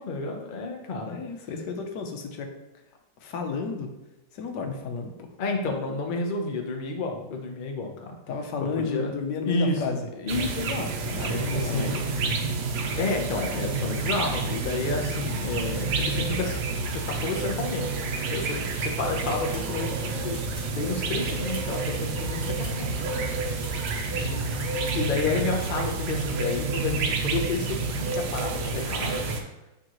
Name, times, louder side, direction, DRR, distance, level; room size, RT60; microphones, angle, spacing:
voice 1, 0.0-1.2 5.4-8.2 8.8-9.1 9.4-12.3 13.0-16.6 16.9-23.3 24.9-29.3, left 3 dB, 45° left, 2 dB, 0.7 m, -31 dB
voice 2, 1.1-2.5 3.2-3.9 4.3-5.3 8.3-10.1 11.1-12.5 24.0-24.7, left 5 dB, 80° left, 4 dB, 1.4 m, -32 dB
sound 1, 10.3-29.4, right 4 dB, 75° right, 1.3 m, -29 dB
sound 2, 19.2-19.7 20.3-20.7 21.2-21.8 22.4-22.8 23.6-24.0 24.6-25.0, right 1 dB, 25° right, 1.7 m, -44 dB
8.8 x 3.8 x 3.0 m, 1.0 s
omnidirectional pair, 1.8 m